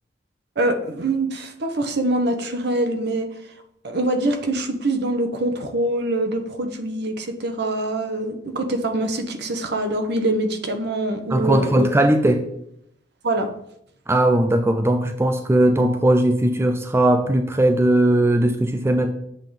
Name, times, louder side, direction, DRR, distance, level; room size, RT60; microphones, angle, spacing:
voice 1, 0.6-3.3 3.8-11.9 13.2-13.5, right 1 dB, 65° right, 6 dB, 0.9 m, -24 dB
voice 2, 11.3-12.4 14.1-19.1, right 1 dB, 15° right, 6 dB, 0.4 m, -18 dB
7.6 x 3.7 x 4.9 m, 0.74 s
head